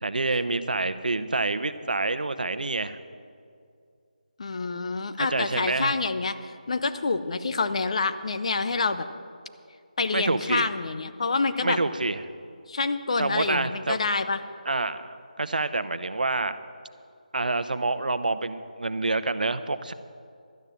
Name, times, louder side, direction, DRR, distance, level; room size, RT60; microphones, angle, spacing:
voice 1, 0.0-3.0 5.2-5.9 10.1-10.7 11.6-12.2 13.2-14.0 14.6-16.6 17.3-19.9, right 3 dB, 80° right, 12 dB, 0.7 m, -27 dB
voice 2, 4.4-9.0 10.0-11.8 12.7-14.4, left 4 dB, 45° left, 11 dB, 0.7 m, -27 dB
12.0 x 9.0 x 7.2 m, 2.4 s
figure-of-eight pair, 165°, 5 cm